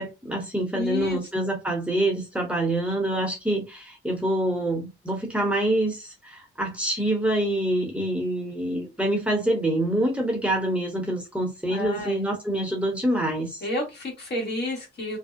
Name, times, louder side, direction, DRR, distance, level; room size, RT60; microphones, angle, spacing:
voice 1, 0.0-13.6, right 1 dB, 5° right, 0 dB, 0.8 m, -26 dB
voice 2, 0.7-1.2 11.7-12.2 13.6-15.2, left 1 dB, 55° left, -1 dB, 1.5 m, -30 dB
2.6 x 2.0 x 2.5 m, 0.25 s
cardioid pair, 90°, 20 cm